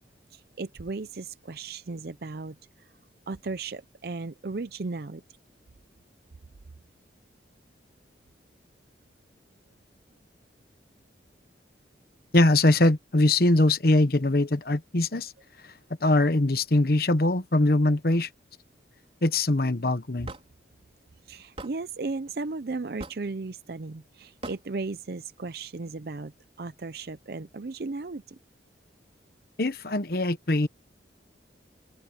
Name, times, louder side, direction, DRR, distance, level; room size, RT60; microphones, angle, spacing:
voice 1, 0.3-2.6 3.3-5.2 21.3-26.3 26.6-28.4, right 3 dB, 55° right, 0.6 m, -35 dB
voice 2, 12.3-15.3 15.6-15.7 16.0-18.3 19.2-20.3 29.6-30.7, left 2 dB, 55° left, 1.1 m, -22 dB
Hammer / Wood, 20.3-20.5 21.6-21.7 23.0-23.3 24.4-24.6, right 2 dB, 30° right, 4.4 m, -39 dB
open air
head